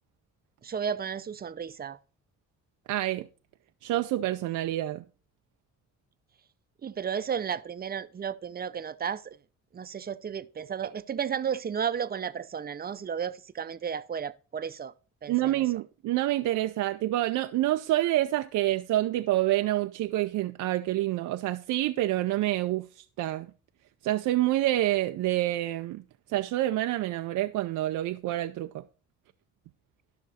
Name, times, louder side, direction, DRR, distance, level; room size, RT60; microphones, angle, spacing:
voice 1, 0.6-2.0 6.8-9.4 9.7-14.9 15.2-15.6, right 7 dB, 30° right, 0.6 m, -33 dB
voice 2, 2.9-3.3 3.8-5.0 15.3-23.5 24.0-26.0 26.3-28.8, right 15 dB, 80° right, 0.5 m, -27 dB
11.5 x 6.1 x 4.1 m
cardioid pair, 90°, 30 cm